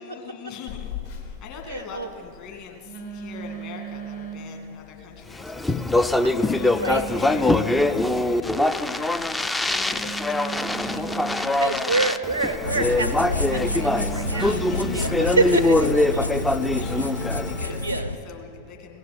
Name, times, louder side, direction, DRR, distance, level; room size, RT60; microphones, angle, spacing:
voice 1, 0.0-12.1 13.7-15.5 16.4-19.0, left 6 dB, 40° left, 2 dB, 2.0 m, -42 dB
Telephone, 0.7-15.0, right 3 dB, 60° left, 2.0 m, -38 dB
voice 2, 1.7-2.1 6.2-6.3 6.8-7.0 11.6-14.6 14.9-16.4 17.8-18.1, right 3 dB, 90° right, 9 dB, 0.6 m, -27 dB
Speech, 5.4-17.7, left 2 dB, 10° left, 0.4 m, -23 dB
sound 1, 12.6-18.1, left 2 dB, 85° left, 0.5 m, -29 dB
17.0 x 7.2 x 7.7 m, 2.7 s
figure-of-eight pair, 90°, 0 cm